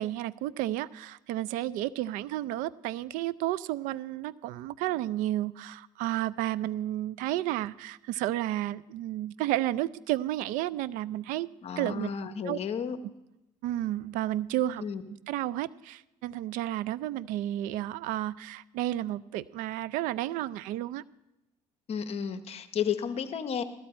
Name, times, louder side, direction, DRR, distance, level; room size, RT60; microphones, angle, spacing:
voice 1, 0.0-11.5 11.8-12.1 12.4-12.6 13.6-14.8 15.3-21.0, right 14 dB, 85° right, 18 dB, 0.4 m, -32 dB
voice 2, 11.6-13.0 14.8-15.0 21.9-23.6, left 7 dB, 50° left, 10 dB, 1.0 m, -32 dB
16.0 x 14.0 x 4.4 m, 0.93 s
cardioid pair, 110°, 13 cm